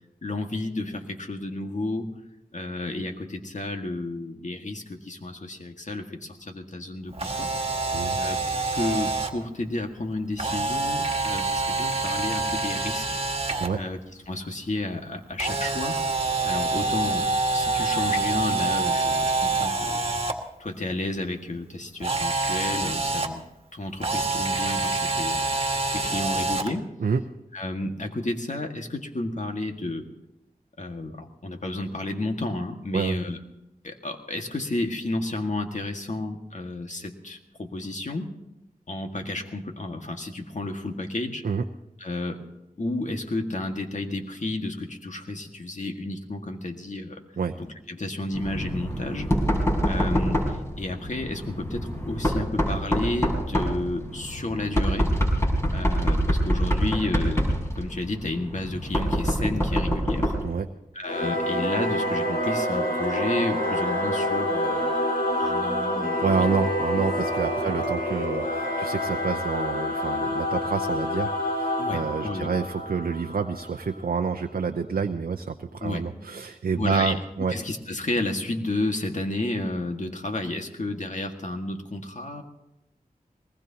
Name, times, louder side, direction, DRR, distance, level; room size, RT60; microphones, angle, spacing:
voice 1, 0.2-2.1 2.5-7.5 8.1-13.2 13.7-14.0 14.3-16.0 16.4-17.3 17.5-20.0 20.6-23.4 23.7-25.7 25.9-26.9 27.5-30.1 30.8-33.4 33.8-38.3 38.9-41.4 42.0-42.4 42.8-47.2 47.6-49.4 49.8-55.1 55.7-57.4 57.8-60.3 60.9-66.2 67.6-67.7 71.8-72.5 75.8-76.0 76.7-77.2 77.5-82.4, left 2 dB, 55° left, 4 dB, 1.9 m, -31 dB
Camera, 7.1-9.3 10.4-13.7 15.4-20.3 22.0-23.3 24.0-26.7, right 3 dB, 40° right, 1.8 m, -26 dB
Knock, 48.3-60.6, equal, 20° left, 4.4 m, -26 dB
Singing / Musical instrument, 61.0-73.9, left 1 dB, 70° left, 4.8 m, -27 dB
voice 2, 66.2-77.6, right 5 dB, 75° right, 4 dB, 0.7 m, -28 dB
22.0 x 20.0 x 2.9 m, 0.91 s
cardioid pair, 45°, 15 cm